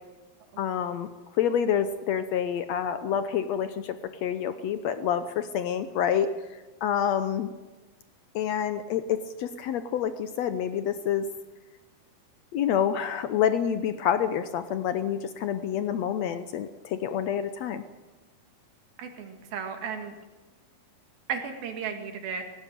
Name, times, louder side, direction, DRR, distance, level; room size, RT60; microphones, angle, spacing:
voice 1, 0.6-1.1 1.4-6.3 6.8-7.5 8.3-11.3 12.5-17.8, left 9 dB, 75° left, 11 dB, 1.5 m, -27 dB
voice 2, 19.0-20.2 21.3-22.4, right 6 dB, 90° right, 5 dB, 4.0 m, -34 dB
18.0 x 17.0 x 9.2 m, 1.2 s
omnidirectional pair, 4.1 m